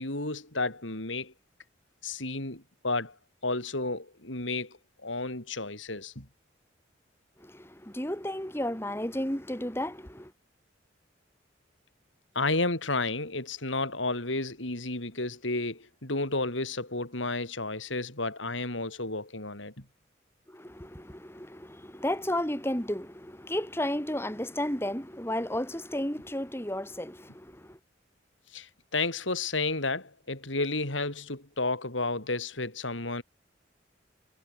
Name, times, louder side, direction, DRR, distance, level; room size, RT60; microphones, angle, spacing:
voice 1, 0.0-1.3 2.0-3.1 3.4-6.3 12.3-19.8 28.5-33.2, left 3 dB, 85° left, 6.2 m, -32 dB
voice 2, 7.4-10.3 20.5-27.8, left 1 dB, 15° left, 3.6 m, -33 dB
head